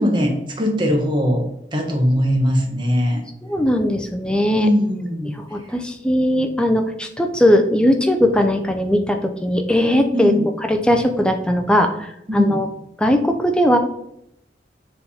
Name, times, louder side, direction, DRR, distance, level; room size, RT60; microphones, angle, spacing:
voice 1, 0.0-1.4 1.7-3.2 4.5-5.4 10.1-10.5 12.3-12.6, equal, 25° right, 2 dB, 1.1 m, -20 dB
voice 2, 3.5-4.7 5.3-10.3 10.7-12.7 13.0-13.8, left 1 dB, 5° left, 4 dB, 0.6 m, -19 dB
7.0 x 3.5 x 4.2 m, 0.76 s
head